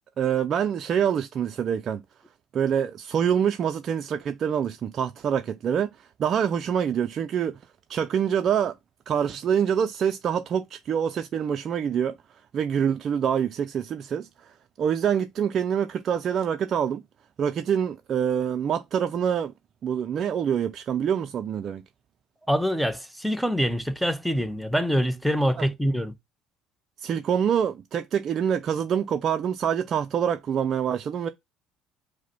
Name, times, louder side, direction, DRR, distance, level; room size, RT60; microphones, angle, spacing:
voice 1, 0.2-2.0 2.5-7.6 7.9-8.7 9.1-12.1 12.5-17.0 17.4-19.5 19.8-21.8 25.6-25.7 27.0-31.3, right 8 dB, 50° right, 0.3 m, -26 dB
voice 2, 22.5-26.1, equal, ahead, 0.6 m, -25 dB
4.8 x 2.0 x 4.3 m
supercardioid pair, 90°, 0 cm